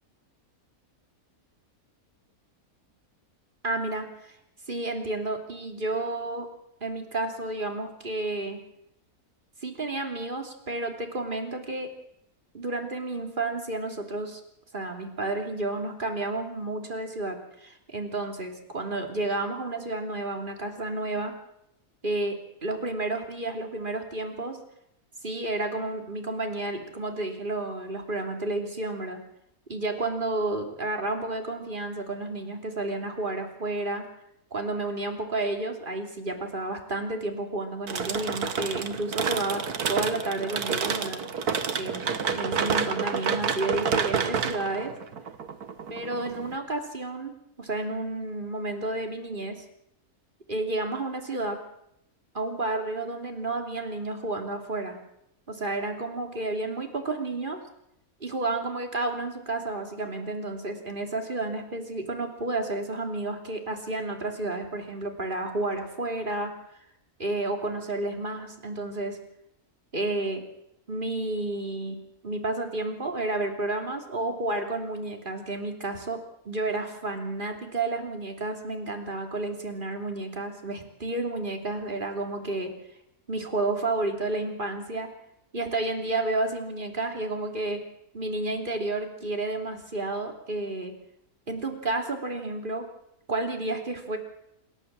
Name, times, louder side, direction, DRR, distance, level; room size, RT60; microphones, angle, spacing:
voice 1, 3.6-4.3 4.7-6.5 6.8-8.6 9.6-11.9 12.5-14.4 14.7-21.3 22.0-24.6 25.2-29.2 29.7-34.0 34.5-39.6 39.9-41.2 41.7-42.1 42.3-44.9 45.9-49.6 50.5-51.6 52.3-55.0 55.5-57.6 58.2-66.5 67.2-69.2 69.9-70.4 70.9-72.0 72.2-82.7 83.3-85.1 85.5-87.8 88.1-90.9 91.5-92.9 93.3-94.2, right 2 dB, 35° right, 3 dB, 3.2 m, -31 dB
sound 1, 37.9-46.5, right 6 dB, 80° right, 1.9 m, -29 dB
27.0 x 13.0 x 7.5 m, 0.78 s
omnidirectional pair, 1.6 m